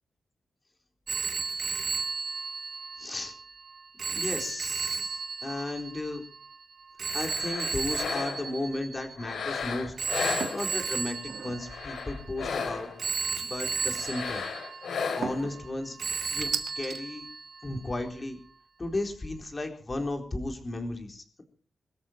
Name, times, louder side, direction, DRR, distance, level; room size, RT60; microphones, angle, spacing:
Telephone, 1.1-9.4 10.0-12.5 13.0-15.7 16.0-17.7, right 5 dB, 50° right, 2.0 m, -34 dB
voice 1, 3.0-3.3 4.1-6.2 7.1-9.9 10.2-12.9 13.4-14.4 15.1-16.5 16.7-17.2 17.6-18.4 18.8-21.4, left 2 dB, 25° left, 4 dB, 4.1 m, -34 dB
sound 1, 7.1-8.6 9.2-11.0 11.6-13.1 13.9-15.5, left 5 dB, 80° left, 4.0 m, -34 dB
sound 2, 10.4-10.7 11.2-11.6 13.4-13.9 15.2-15.6 16.5-17.0, right 7 dB, 85° right, 1.9 m, -36 dB
23.5 x 13.5 x 4.5 m, 0.42 s
wide cardioid pair, 150°, 0 cm